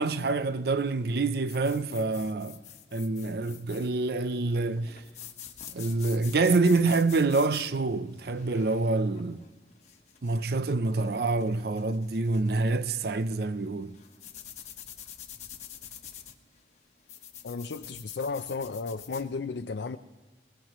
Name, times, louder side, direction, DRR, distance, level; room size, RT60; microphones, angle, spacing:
voice 1, 0.0-2.6 2.9-5.0 5.7-9.4 10.2-13.9, right 3 dB, 55° right, 0.5 m, -27 dB
sound 1, 1.5-19.3, left 9 dB, 40° left, 1.2 m, -48 dB
voice 2, 17.4-20.0, left 4 dB, 75° left, 0.5 m, -34 dB
22.5 x 20.5 x 3.0 m
head